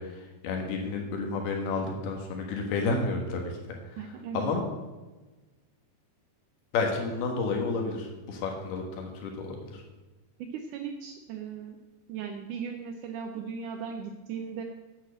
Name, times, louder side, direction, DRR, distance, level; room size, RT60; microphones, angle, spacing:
voice 1, 0.0-4.6 6.7-9.8, left 3 dB, 75° left, 2 dB, 3.4 m, -31 dB
voice 2, 4.0-4.5 10.5-11.8 12.1-14.6, right 6 dB, 80° right, 4 dB, 1.8 m, -37 dB
9.2 x 8.5 x 7.6 m, 1.2 s
omnidirectional pair, 4.6 m